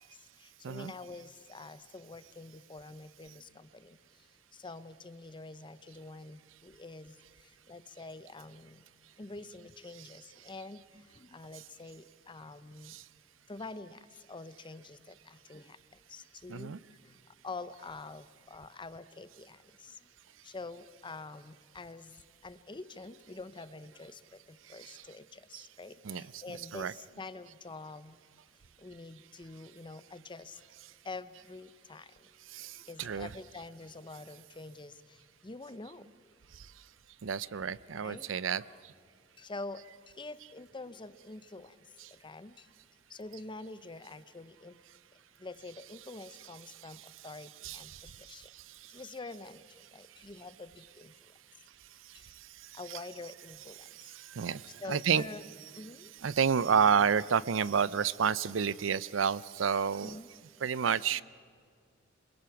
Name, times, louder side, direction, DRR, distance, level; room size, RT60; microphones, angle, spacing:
voice 1, 0.0-4.0 4.5-8.8 9.2-13.0 13.5-15.8 16.1-16.8 17.0-17.2 17.4-20.0 20.4-28.2 28.8-30.6 31.0-32.3 32.8-36.1 38.0-38.3 39.4-41.8 42.1-42.7 43.1-44.8 45.4-47.9 48.2-48.5 48.9-51.1 52.1-52.3 52.7-53.9 54.8-55.4 55.7-56.1 60.0-60.3, left 3 dB, 25° left, 14 dB, 0.7 m, -46 dB
voice 2, 16.5-16.8 24.8-25.0 25.5-25.7 26.0-26.9 32.5-33.4 37.2-38.6 42.0-42.1 46.4-46.5 47.0-47.1 47.6-48.3 52.7-53.3 53.7-55.3 55.6-55.9 56.2-60.2 60.6-61.2, right 7 dB, 80° right, 19 dB, 0.5 m, -31 dB
27.5 x 21.5 x 5.9 m, 2.1 s
head